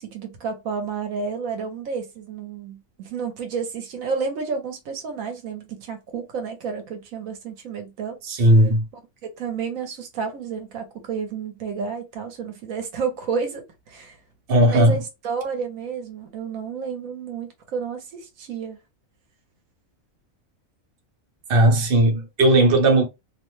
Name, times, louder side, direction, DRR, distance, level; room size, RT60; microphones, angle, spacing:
voice 1, 0.0-8.2 9.4-14.2 14.6-18.8, right 5 dB, 80° right, 1.1 m, -31 dB
voice 2, 8.2-8.8 14.5-15.0 21.5-23.0, right 1 dB, 50° right, 0.9 m, -16 dB
2.7 x 2.1 x 3.1 m
omnidirectional pair, 1.4 m